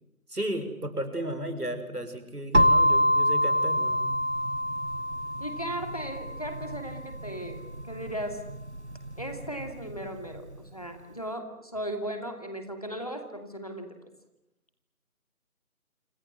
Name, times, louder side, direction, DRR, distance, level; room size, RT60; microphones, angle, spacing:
voice 1, 0.3-4.0, right 1 dB, 85° right, 9 dB, 6.2 m, -34 dB
sound 1, 2.5-10.4, equal, 50° right, 1.5 m, -27 dB
voice 2, 5.4-7.6 7.9-8.4 9.2-14.1, right 1 dB, 25° left, 6 dB, 2.6 m, -37 dB
27.5 x 25.5 x 7.8 m, 0.83 s
figure-of-eight pair, 180°, 45 cm